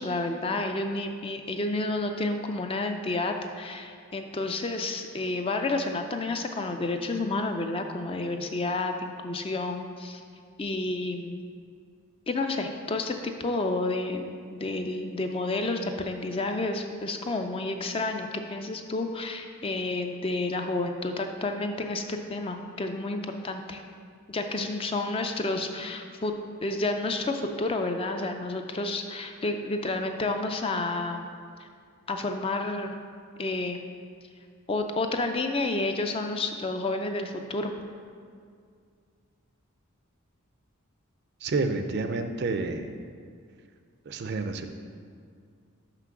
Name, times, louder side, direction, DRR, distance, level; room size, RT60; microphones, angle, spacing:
voice 1, 0.0-10.2 10.6-11.4 12.3-23.8 24.3-26.3 26.6-31.3 31.6-31.7 32.1-33.0 33.4-33.8 34.7-37.8, left 2 dB, 25° left, 5 dB, 0.4 m, -30 dB
voice 2, 41.4-42.9 44.1-44.7, right 3 dB, 50° right, 7 dB, 0.5 m, -29 dB
5.8 x 5.8 x 5.9 m, 2.2 s
head